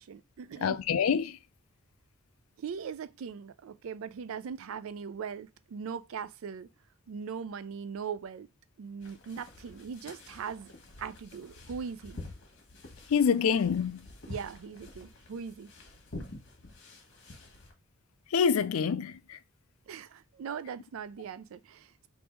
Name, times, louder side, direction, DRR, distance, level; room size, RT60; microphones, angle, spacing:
voice 1, 0.0-0.8 2.6-6.7 7.1-8.5 8.8-10.7 11.0-12.3 14.3-15.7 19.9-22.1, right 6 dB, 75° right, 0.4 m, -40 dB
voice 2, 0.6-1.4 13.1-14.0 18.3-19.4, left 6 dB, 85° left, 0.4 m, -26 dB
sound 1, 9.0-17.7, left 2 dB, 60° left, 1.1 m, -48 dB
3.5 x 2.6 x 4.5 m
head